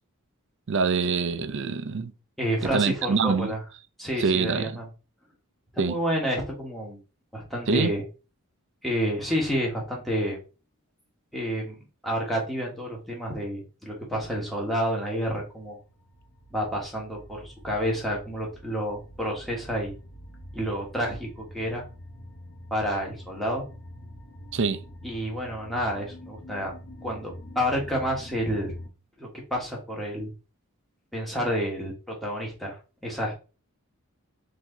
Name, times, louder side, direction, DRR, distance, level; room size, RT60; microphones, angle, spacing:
voice 1, 0.7-2.1 2.7-3.5 4.2-4.8 5.8-6.0 7.7-7.9 24.5-24.8, right 5 dB, 55° right, 0.5 m, -25 dB
voice 2, 2.4-3.6 4.0-4.9 5.7-7.0 7.3-8.0 8.8-10.4 11.3-11.8 12.0-15.8 16.5-19.9 20.5-21.8 22.7-23.6 25.0-26.7 27.0-28.7 29.2-30.3 31.1-33.3, equal, ahead, 1.4 m, -29 dB
sound 1, 14.3-28.9, left 1 dB, 55° left, 0.9 m, -45 dB
4.5 x 2.8 x 3.9 m
head